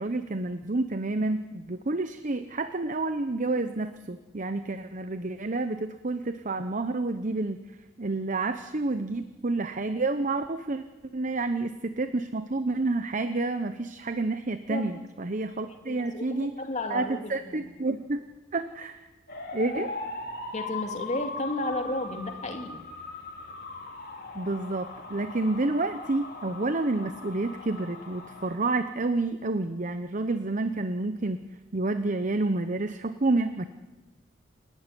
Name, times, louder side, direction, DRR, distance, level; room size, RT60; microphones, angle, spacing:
voice 1, 0.0-7.6 8.0-10.8 11.1-16.6 16.9-18.2 18.5-19.1 19.5-19.9 24.3-31.4 31.7-33.7, right 2 dB, 40° right, 9 dB, 0.9 m, -29 dB
voice 2, 15.8-17.7 20.5-22.8, left 1 dB, 35° left, 4 dB, 2.4 m, -33 dB
sound 1, 19.3-28.6, left 3 dB, 50° left, 2.9 m, -39 dB
28.0 x 12.0 x 10.0 m, 1.1 s
head